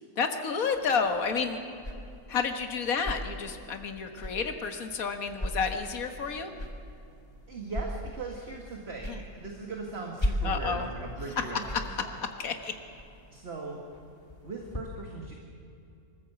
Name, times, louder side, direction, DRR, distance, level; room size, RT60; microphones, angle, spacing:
voice 1, 0.2-1.6 2.3-6.5 9.1-9.2 10.4-10.9 12.4-12.7, left 5 dB, 70° left, 6 dB, 1.9 m, -30 dB
sound 1, 0.7-14.8, left 1 dB, 15° left, 1.9 m, -39 dB
voice 2, 7.5-12.2 13.3-13.8 14.4-15.3, right 3 dB, 45° right, 1 dB, 2.0 m, -39 dB
24.5 x 14.0 x 8.2 m, 2.7 s
omnidirectional pair, 1.6 m